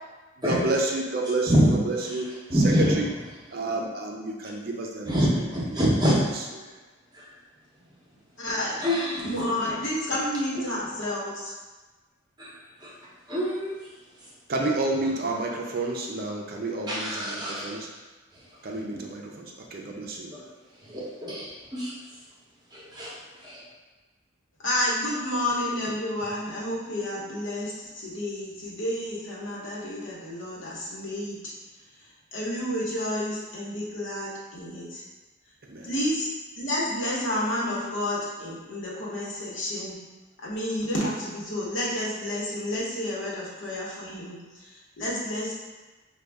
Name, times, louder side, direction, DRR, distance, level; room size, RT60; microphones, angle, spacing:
voice 1, 0.4-2.3 3.0-3.1 3.5-5.5 5.7-5.8 14.5-17.9 18.6-19.5 19.7-20.3 35.7-35.9, right 2 dB, 45° right, 0 dB, 0.5 m, -30 dB
voice 2, 1.5-1.8 2.5-3.0 5.1-6.2 7.1-7.2 8.8-9.2 12.4-12.5 12.8-12.9 13.3-13.7 16.9-17.7 20.3-20.4 20.8-21.9 22.7-23.1 23.4-23.6, equal, 20° right, -5 dB, 0.8 m, -25 dB
voice 3, 8.4-11.5 24.6-31.5 32.3-35.0 35.8-36.3 36.6-40.0 40.4-45.5, left 1 dB, 70° left, -5 dB, 1.1 m, -30 dB
5.1 x 2.3 x 3.4 m, 1.2 s
head